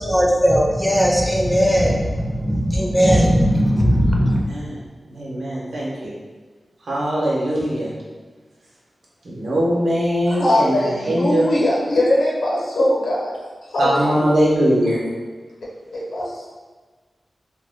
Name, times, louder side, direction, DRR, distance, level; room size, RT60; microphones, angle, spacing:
voice 1, 0.0-4.4, equal, ahead, -1 dB, 0.4 m, -17 dB
voice 2, 5.1-6.1 6.9-7.9 9.2-11.5 13.8-15.0, equal, 85° right, -6 dB, 0.8 m, -21 dB
voice 3, 10.3-13.3 13.7-14.3 15.9-16.4, left 1 dB, 80° left, -4 dB, 0.7 m, -20 dB
2.2 x 2.1 x 3.3 m, 1.4 s
wide cardioid pair, 125°, 0 cm